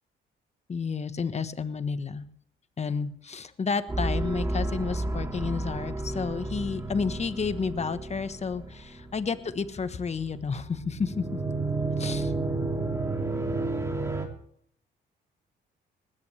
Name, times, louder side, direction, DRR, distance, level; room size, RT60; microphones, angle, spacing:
voice 1, 0.7-2.3 2.8-11.4 12.0-12.3, left 5 dB, 35° left, 12 dB, 1.2 m, -31 dB
sound 1, 3.9-14.3, right 2 dB, 15° right, 2.9 m, -31 dB
20.0 x 16.5 x 3.4 m, 0.68 s
cardioid pair, 90°, 20 cm